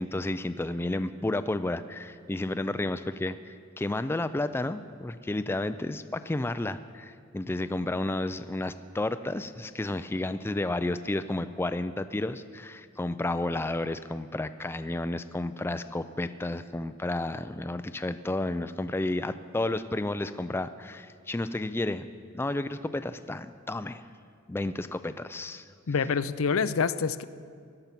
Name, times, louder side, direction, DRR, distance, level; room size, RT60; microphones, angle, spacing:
voice 1, 0.0-22.1 22.3-24.0 24.5-25.7, left 2 dB, 10° left, 11 dB, 0.3 m, -31 dB
voice 2, 25.9-27.2, left 5 dB, 75° left, 14 dB, 0.5 m, -26 dB
17.5 x 12.0 x 5.8 m, 2.3 s
head